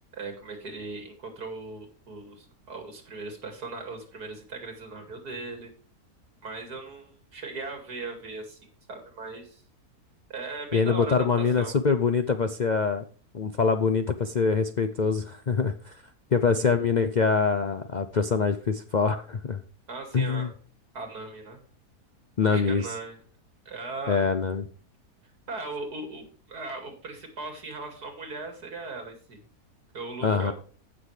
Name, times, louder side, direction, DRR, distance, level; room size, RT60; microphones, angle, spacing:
voice 1, 0.1-5.7 6.4-8.6 8.9-9.6 10.3-11.7 19.9-20.5 20.9-21.6 22.5-23.2 23.6-24.2 25.5-29.4 29.9-30.5, right 3 dB, 80° right, 4 dB, 3.0 m, -38 dB
voice 2, 10.7-13.0 13.3-16.0 16.3-19.6 20.1-20.5 22.4-22.9 24.1-24.6 30.2-30.5, left 5 dB, 55° left, 9 dB, 0.4 m, -24 dB
15.5 x 6.3 x 3.3 m, 0.42 s
omnidirectional pair, 1.6 m